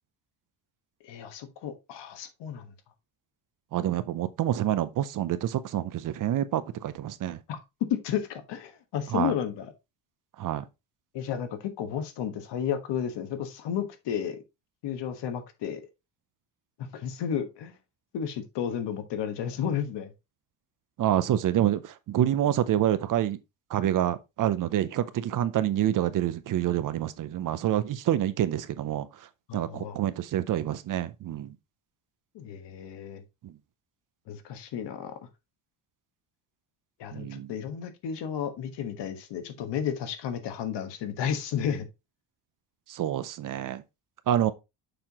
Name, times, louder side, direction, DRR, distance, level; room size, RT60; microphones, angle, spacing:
voice 1, 1.0-2.7 7.5-7.6 7.9-9.7 11.1-14.4 14.8-15.8 16.8-17.8 18.1-20.1 29.5-30.0 32.3-33.2 34.3-35.1 37.0-41.9, left 8 dB, 70° left, 1.4 m, -32 dB
voice 2, 3.7-7.4 9.1-9.3 10.4-10.6 21.0-23.4 23.7-29.1 29.5-31.5 37.1-37.5 42.9-43.8 44.3-44.5, right 11 dB, 45° right, 0.6 m, -27 dB
6.8 x 5.7 x 2.9 m
cardioid pair, 155°, 44 cm